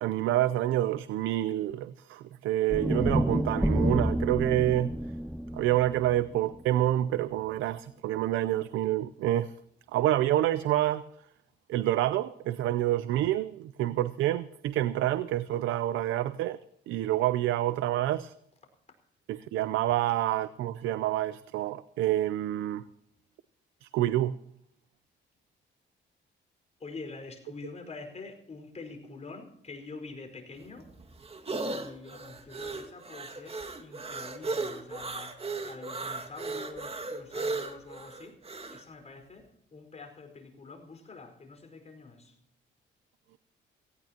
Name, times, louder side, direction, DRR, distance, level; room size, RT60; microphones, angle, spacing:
voice 1, 0.0-4.9 5.5-9.5 9.9-11.0 11.7-16.6 16.9-18.3 19.3-22.8 23.8-24.4, right 13 dB, 90° right, 0.6 m, -28 dB
sound 1, 2.7-6.9, equal, ahead, 0.5 m, -29 dB
voice 2, 26.8-31.0 31.4-42.4, left 3 dB, 35° left, 4.9 m, -46 dB
sound 2, 30.6-38.8, right 3 dB, 30° right, 2.0 m, -36 dB
18.0 x 16.5 x 2.9 m
cardioid pair, 90°, 20 cm